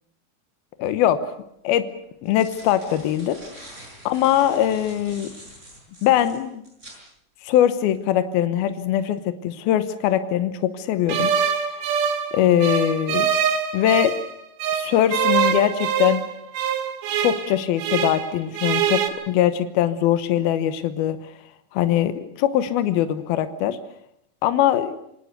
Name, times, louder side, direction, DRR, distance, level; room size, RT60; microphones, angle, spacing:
voice 1, 0.8-1.3 1.6-1.9 2.2-3.4 4.1-5.3 6.0-6.6 7.4-11.3 12.3-13.3 13.7-14.2 14.7-16.2 17.2-21.2 21.7-23.8 24.4-25.0, left 11 dB, 80° left, 11 dB, 3.0 m, -21 dB
sound 1, 1.0-1.1 2.0-7.0, right 1 dB, 20° right, 7.2 m, -45 dB
sound 2, 11.1-14.3 14.6-18.3 18.5-19.1, right 8 dB, 90° right, 3.6 m, -24 dB
26.0 x 18.5 x 8.1 m, 0.74 s
omnidirectional pair, 4.3 m